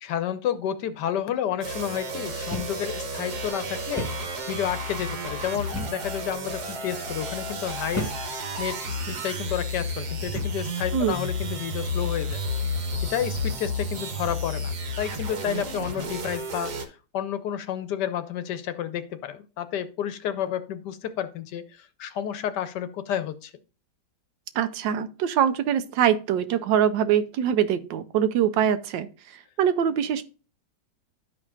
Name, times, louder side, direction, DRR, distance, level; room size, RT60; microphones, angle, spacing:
voice 1, 0.0-4.1 4.5-23.5, left 10 dB, 70° left, 12 dB, 1.2 m, -31 dB
sound 1, 1.6-16.9, left 1 dB, 60° right, 1.6 m, -32 dB
sound 2, 2.5-2.8 3.1-3.2 4.0-4.3 5.7-6.1 6.8-7.0 7.9-8.3 9.0-9.2 10.3-10.7, equal, 15° left, 0.5 m, -33 dB
voice 2, 24.5-29.1 29.6-30.2, right 9 dB, 80° right, 11 dB, 1.3 m, -23 dB
12.0 x 4.9 x 2.4 m, 0.34 s
omnidirectional pair, 2.0 m